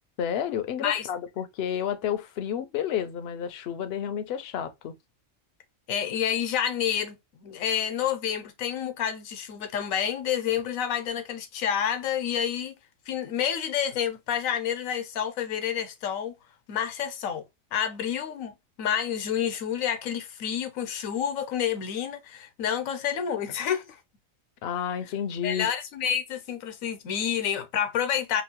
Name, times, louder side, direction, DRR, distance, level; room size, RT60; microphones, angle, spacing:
voice 1, 0.2-4.9 24.6-25.7, left 9 dB, 65° left, 0.7 m, -30 dB
voice 2, 5.9-12.7 13.1-16.3 16.7-17.4 17.7-18.5 18.8-24.0 25.4-28.4, left 9 dB, 85° left, 1.1 m, -29 dB
3.0 x 2.5 x 2.8 m
omnidirectional pair, 1.4 m